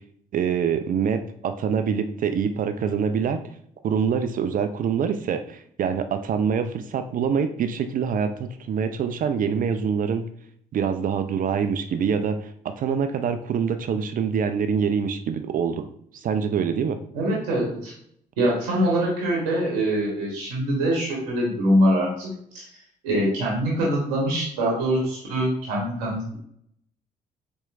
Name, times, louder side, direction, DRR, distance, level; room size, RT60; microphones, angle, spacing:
voice 1, 0.3-3.4 3.8-10.3 10.7-12.5 12.8-15.8 16.1-17.0, right 7 dB, 45° right, 9 dB, 0.4 m, -25 dB
voice 2, 17.1-17.9 18.4-22.7 23.0-26.3, right 1 dB, 75° right, -3 dB, 0.9 m, -24 dB
4.2 x 2.7 x 2.4 m, 0.66 s
figure-of-eight pair, 40°, 21 cm